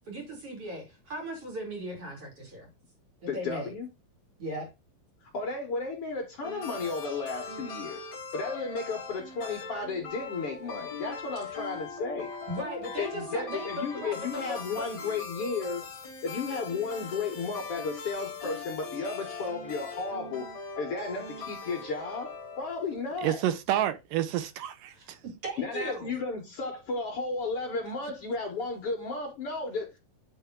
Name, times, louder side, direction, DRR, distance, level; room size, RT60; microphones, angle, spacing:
voice 1, 0.1-2.7 3.2-3.7 4.4-4.7 11.4-11.5 12.5-14.9 24.9-26.1, equal, 45° right, 2.7 m, -38 dB
voice 2, 3.3-3.9 5.3-8.0 8.3-12.3 13.0-15.8 16.2-20.5 20.8-22.3 22.6-23.4 25.6-30.0, left 4 dB, 60° left, 1.5 m, -34 dB
sound 1, 6.4-23.0, left 4 dB, 40° left, 2.0 m, -40 dB
voice 3, 23.2-25.2, right 12 dB, 75° right, 2.1 m, -29 dB
8.9 x 3.5 x 3.6 m
omnidirectional pair, 4.2 m